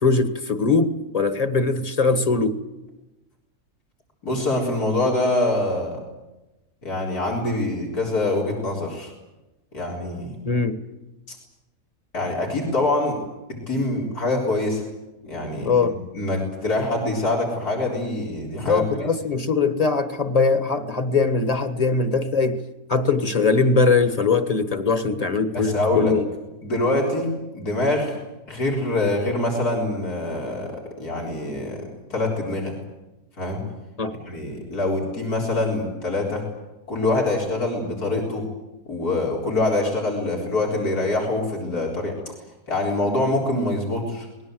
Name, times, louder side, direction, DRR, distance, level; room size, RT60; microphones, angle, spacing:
voice 1, 0.0-2.6 10.4-10.8 15.6-16.0 18.6-22.6 22.9-26.2 34.0-34.1, left 4 dB, 25° left, 9 dB, 1.6 m, -21 dB
voice 2, 4.2-6.0 6.8-9.1 9.7-10.3 11.3-11.4 12.1-13.2 13.7-14.8 15.2-15.8 16.1-18.8 25.5-26.2 26.6-28.2 28.5-30.7 31.0-32.8 33.4-33.6 34.3-36.4 36.9-38.4 38.9-42.1 42.7-44.3, left 2 dB, 85° left, -2 dB, 4.8 m, -24 dB
26.0 x 20.5 x 7.9 m, 1.0 s
omnidirectional pair, 1.6 m